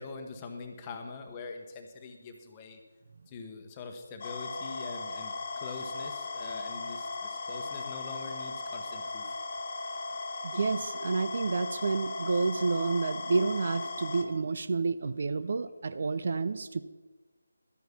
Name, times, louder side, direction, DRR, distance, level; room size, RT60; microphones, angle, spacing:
voice 1, 0.0-2.8 3.3-9.4, left 4 dB, 20° left, 5 dB, 1.2 m, -43 dB
sound 1, 4.2-14.2, left 3 dB, 35° left, 1.5 m, -37 dB
voice 2, 10.4-16.8, right 4 dB, 45° right, 12 dB, 0.5 m, -29 dB
12.5 x 9.2 x 5.8 m, 1.3 s
figure-of-eight pair, 155°, 0 cm